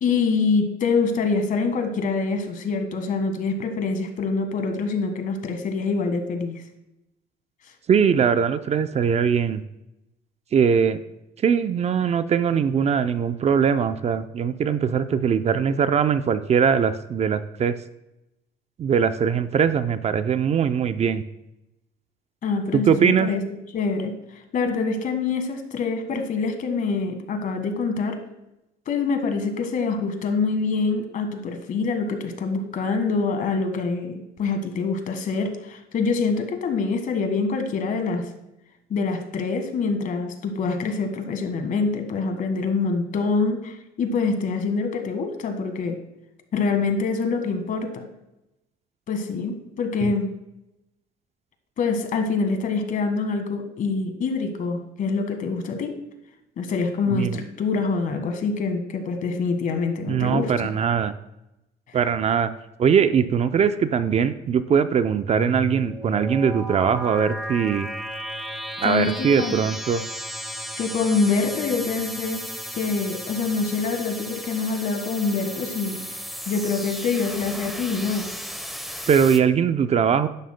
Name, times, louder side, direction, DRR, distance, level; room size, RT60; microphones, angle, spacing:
voice 1, 0.0-6.6 22.4-23.4 23.7-28.2 28.9-38.3 38.9-46.0 46.5-48.0 49.1-50.3 51.8-56.0 56.6-60.7 68.8-69.7 70.8-72.5 72.7-76.0 76.5-78.3, left 4 dB, 55° left, 6 dB, 1.6 m, -25 dB
voice 2, 7.9-9.6 10.5-11.0 11.4-17.7 18.8-21.2 22.7-23.3 50.0-50.1 57.1-57.4 60.1-61.1 61.9-62.5 62.8-67.9 68.8-70.0 79.1-80.3, right 7 dB, 40° right, 11 dB, 0.5 m, -21 dB
sound 1, 65.3-79.4, equal, ahead, 0.9 m, -34 dB
11.5 x 10.5 x 2.2 m, 0.90 s
cardioid pair, 110°, 17 cm